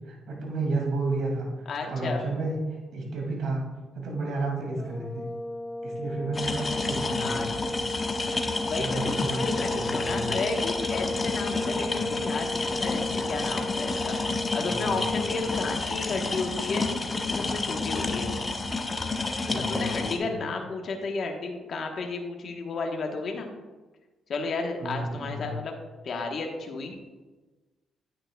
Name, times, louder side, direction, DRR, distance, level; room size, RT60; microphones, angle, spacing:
voice 1, 0.1-1.5 1.9-3.6 4.0-5.3 5.8-7.7 8.8-9.4 9.7-10.3 14.7-15.1 19.5-20.5 24.8-25.5, right 2 dB, 70° right, 0 dB, 2.1 m, -32 dB
voice 2, 1.7-2.2 7.2-7.5 8.6-16.9 17.3-18.3 19.5-23.5 24.3-25.7 26.0-27.0, left 3 dB, 55° left, 2 dB, 1.0 m, -33 dB
sound 1, 4.8-15.8, left 1 dB, 10° left, 1.8 m, -35 dB
sound 2, 6.3-20.2, left 3 dB, 30° left, 0.7 m, -30 dB
9.1 x 8.5 x 2.2 m, 1.2 s
cardioid pair, 90°, 0 cm